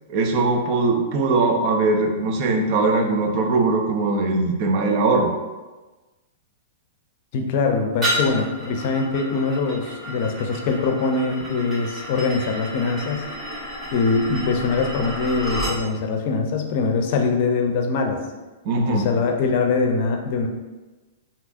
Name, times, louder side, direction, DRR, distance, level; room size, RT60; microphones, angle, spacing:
voice 1, 0.1-5.3 18.6-19.0, right 3 dB, 45° right, 2 dB, 0.5 m, -20 dB
voice 2, 7.3-13.3 13.9-18.2 18.9-20.5, left 4 dB, 55° left, 3 dB, 0.5 m, -23 dB
sound 1, 8.0-15.8, equal, 20° right, 1.4 m, -31 dB
3.4 x 2.7 x 2.5 m, 1.2 s
hypercardioid pair, 115°, 0 cm